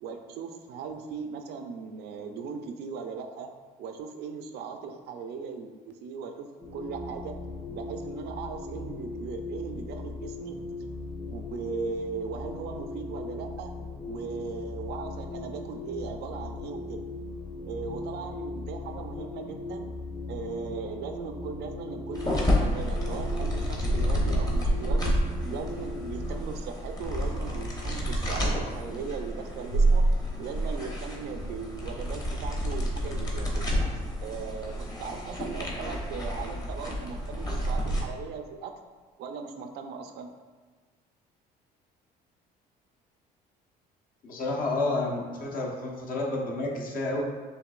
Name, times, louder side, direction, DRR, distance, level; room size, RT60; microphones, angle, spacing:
voice 1, 0.0-3.5 3.8-7.4 7.6-10.6 11.3-13.7 14.1-17.0 17.6-19.9 20.3-30.1 30.4-33.6 34.2-38.7 39.2-40.3, right 5 dB, 75° right, 6 dB, 0.5 m, -38 dB
sound 1, 6.6-26.4, left 2 dB, 10° right, 0.5 m, -38 dB
sound 2, 22.1-38.0, right 1 dB, 20° left, 0.9 m, -29 dB
voice 2, 44.2-47.2, left 2 dB, 55° left, -2 dB, 1.0 m, -30 dB
6.6 x 2.7 x 2.4 m, 1.4 s
cardioid pair, 110°, 17 cm